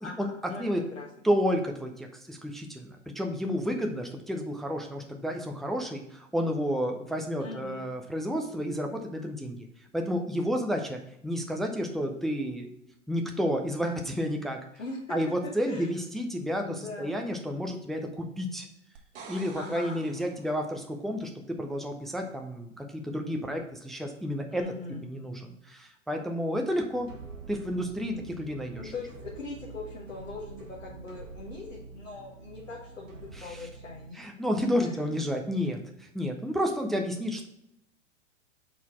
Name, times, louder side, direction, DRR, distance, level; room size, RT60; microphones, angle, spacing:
voice 1, 0.0-0.6 0.9-1.1 7.4-7.8 14.8-15.9 16.6-17.2 19.6-20.0 24.5-25.0 28.1-28.3 28.8-33.1 33.4-34.2 34.8-35.0, left 3 dB, 85° left, -4 dB, 1.5 m, -41 dB
voice 2, 1.2-9.7 9.9-12.7 13.1-14.6 15.1-18.7 19.3-21.3 21.6-24.6 25.0-27.1 27.5-28.9 33.4-33.6 34.1-37.5, equal, ahead, 3 dB, 0.4 m, -31 dB
sound 1, 19.0-20.9 24.6-24.7, right 5 dB, 60° right, 1.2 m, -48 dB
sound 2, 26.9-34.1, right 4 dB, 85° right, 1.2 m, -46 dB
4.8 x 4.0 x 5.5 m, 0.78 s
hypercardioid pair, 100°, 37 cm